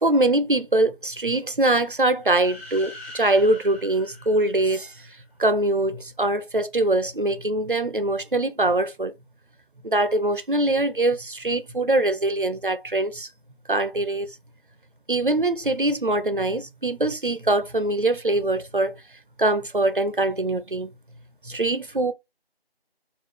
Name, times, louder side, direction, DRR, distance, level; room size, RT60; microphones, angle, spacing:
voice 1, 0.0-4.9 5.4-9.1 9.8-13.3 13.7-14.3 15.1-19.0 19.4-20.9 21.4-22.1, right 2 dB, 55° right, 0.5 m, -23 dB
sound 1, 2.2-5.1, left 2 dB, ahead, 0.8 m, -43 dB
3.7 x 2.4 x 3.2 m
figure-of-eight pair, 175°, 31 cm